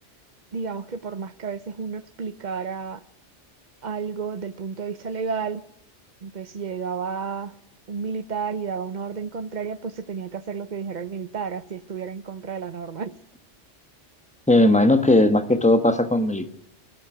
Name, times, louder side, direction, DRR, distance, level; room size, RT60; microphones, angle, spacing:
voice 1, 0.5-3.0 3.8-5.6 6.2-7.5 7.9-13.1, right 5 dB, 40° right, 1.0 m, -31 dB
voice 2, 14.5-16.5, left 1 dB, 5° left, 1.2 m, -18 dB
21.0 x 15.5 x 8.9 m
omnidirectional pair, 1.2 m